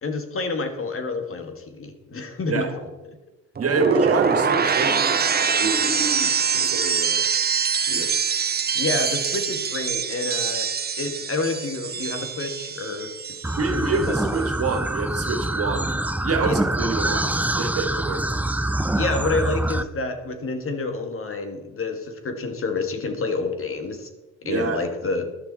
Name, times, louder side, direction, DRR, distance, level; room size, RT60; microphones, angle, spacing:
voice 1, 0.0-2.9 8.7-10.7 11.0-13.1 13.7-14.2 16.4-16.6 18.9-24.1 24.4-25.3, left 3 dB, 45° left, 6 dB, 2.0 m, -28 dB
sound 1, 3.6-13.7 13.9-14.4, right 6 dB, 30° right, 0.9 m, -24 dB
voice 2, 3.6-7.2 7.9-8.1 13.6-18.3 24.4-24.8, right 3 dB, 50° right, 6 dB, 2.2 m, -27 dB
sound 2, 13.4-19.8, right 1 dB, 5° right, 0.7 m, -25 dB
13.0 x 11.5 x 4.3 m, 1.1 s
cardioid pair, 90°, 30 cm